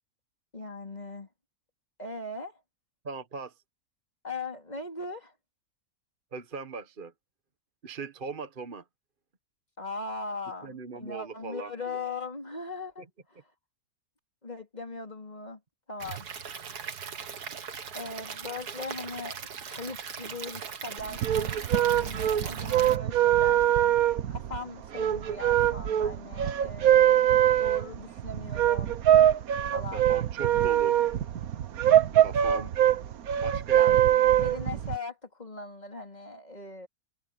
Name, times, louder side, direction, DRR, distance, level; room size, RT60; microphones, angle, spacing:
voice 1, 0.5-1.3 2.0-2.6 4.2-5.3 9.8-13.0 14.4-15.6 15.9-16.3 17.9-19.4 19.7-23.9 24.3-28.9 29.7-30.1 31.8-32.1 33.7-36.9, left 3 dB, 25° left, 4.1 m, -39 dB
voice 2, 3.0-3.5 6.3-7.1 7.8-8.8 10.6-12.0 13.0-13.1 29.9-31.0 32.2-32.7 33.4-34.1, right 4 dB, 35° right, 1.3 m, -39 dB
Stream / Liquid, 16.0-23.0, right 6 dB, 85° right, 2.1 m, -39 dB
sound 1, 21.0-35.0, right 11 dB, 70° right, 1.4 m, -23 dB
omnidirectional pair, 1.6 m